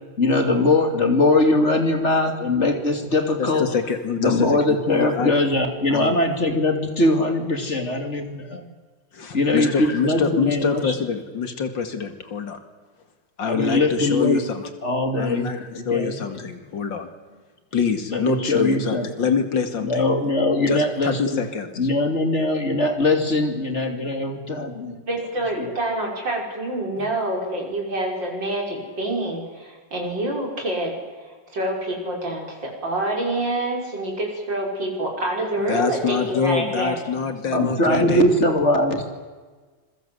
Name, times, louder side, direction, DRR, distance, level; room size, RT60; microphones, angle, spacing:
voice 1, 0.2-3.7 4.2-8.6 9.3-10.9 13.4-14.4 14.8-15.5 15.7-16.2 18.1-19.1 19.8-21.4 21.8-25.0 25.6-25.7 37.5-39.1, left 2 dB, 40° left, 5 dB, 2.8 m, -21 dB
voice 2, 3.4-5.3 5.9-6.2 9.5-12.6 13.4-14.7 15.2-17.1 17.7-20.0 20.6-21.8 27.0-27.1 35.6-38.2, left 6 dB, 85° left, 8 dB, 2.8 m, -25 dB
voice 3, 25.0-30.9 31.2-37.0, right 1 dB, 80° right, 0 dB, 6.6 m, -27 dB
26.5 x 22.5 x 8.1 m, 1.4 s
omnidirectional pair, 2.0 m